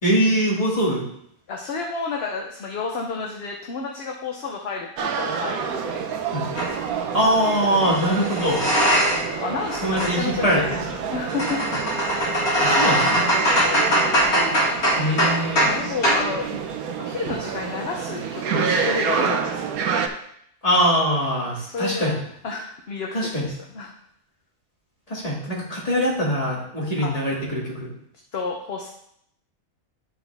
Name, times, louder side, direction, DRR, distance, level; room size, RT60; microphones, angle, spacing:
voice 1, 0.0-1.0 6.3-6.5 7.1-8.6 9.8-10.8 12.6-13.2 15.0-15.7 20.6-22.1 23.1-23.5 25.1-27.9, equal, 25° left, -5 dB, 2.3 m, -22 dB
voice 2, 1.5-6.1 9.2-11.7 13.5-13.9 15.6-16.6 17.0-19.7 21.4-22.2 22.4-23.9 27.0-27.2 28.3-28.9, left 4 dB, 55° left, 0 dB, 0.9 m, -31 dB
sound 1, 5.0-20.1, right 6 dB, 90° right, 1.2 m, -28 dB
sound 2, 6.6-6.7 7.8-9.4 9.6-15.8 16.0-16.3, equal, 85° left, 2.9 m, -21 dB
12.0 x 4.0 x 3.4 m, 0.72 s
omnidirectional pair, 1.5 m